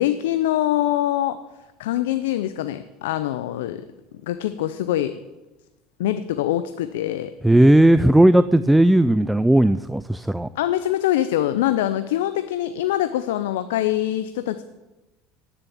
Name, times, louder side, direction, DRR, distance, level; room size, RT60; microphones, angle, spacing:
voice 1, 0.0-1.4 1.8-3.8 4.2-5.2 6.0-7.3 10.5-14.6, left 13 dB, 80° left, 11 dB, 0.5 m, -24 dB
voice 2, 7.4-10.5, right 1 dB, 5° right, 14 dB, 0.4 m, -16 dB
10.0 x 7.0 x 8.4 m, 1.1 s
hypercardioid pair, 75°, 0 cm